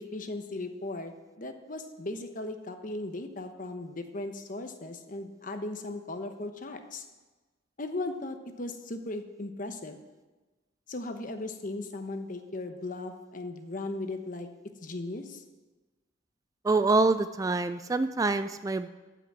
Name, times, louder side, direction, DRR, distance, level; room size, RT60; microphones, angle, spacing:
voice 1, 0.0-7.0 7.8-10.0 10.9-14.5 14.8-15.4, left 2 dB, 45° left, 7 dB, 1.1 m, -37 dB
voice 2, 16.6-18.9, right 3 dB, 20° right, 11 dB, 0.3 m, -26 dB
14.0 x 6.1 x 7.5 m, 1.2 s
head